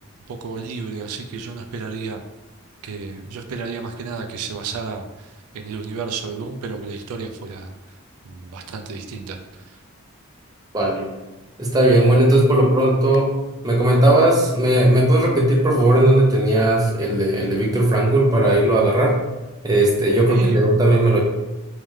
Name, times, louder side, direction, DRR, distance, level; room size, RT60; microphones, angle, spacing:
voice 1, 0.3-2.2 2.8-7.7 8.2-9.8 20.3-20.6, right 4 dB, 80° right, 5 dB, 0.4 m, -32 dB
voice 2, 10.7-11.1 11.6-13.3 13.6-19.2 19.6-21.2, right 1 dB, 15° right, -2 dB, 0.6 m, -17 dB
3.2 x 3.1 x 3.6 m, 1.1 s
head